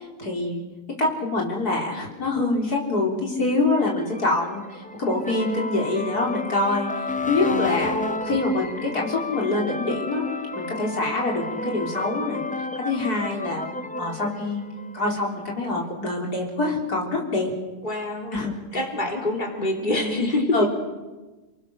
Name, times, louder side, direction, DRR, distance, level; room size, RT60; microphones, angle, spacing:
voice 1, 0.2-0.6 0.9-7.9 8.3-10.3 10.5-12.4 12.8-13.7 14.0-14.7 14.9-17.5 18.3-18.8 20.5-20.7, left 2 dB, 90° left, -1 dB, 4.5 m, -25 dB
sound 1, 3.7-15.5, left 3 dB, 10° left, 0.6 m, -32 dB
voice 2, 7.4-8.2 17.8-18.4 18.7-20.6, left 1 dB, 30° left, 1 dB, 3.6 m, -26 dB
30.0 x 20.0 x 6.6 m, 1.2 s
omnidirectional pair, 1.6 m